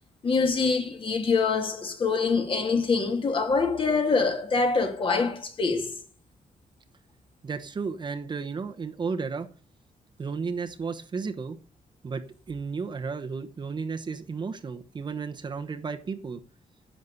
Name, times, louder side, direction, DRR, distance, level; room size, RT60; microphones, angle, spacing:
voice 1, 0.2-6.0, left 4 dB, 35° left, 2.5 m, -25 dB
voice 2, 7.4-9.5 10.2-11.6 12.0-16.4, right 5 dB, 30° right, 1.0 m, -33 dB
11.0 x 7.4 x 8.3 m
wide cardioid pair, 170°, 14 cm